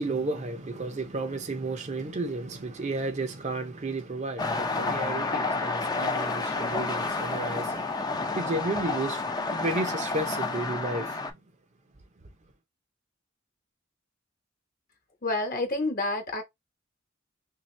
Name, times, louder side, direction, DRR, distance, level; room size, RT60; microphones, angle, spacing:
voice 1, 0.0-11.2, right 2 dB, 35° right, 0.6 m, -33 dB
sound 1, 4.4-11.3, left 3 dB, 20° left, 0.5 m, -30 dB
voice 2, 15.2-16.4, left 2 dB, 45° left, 1.1 m, -28 dB
3.4 x 2.6 x 3.2 m
head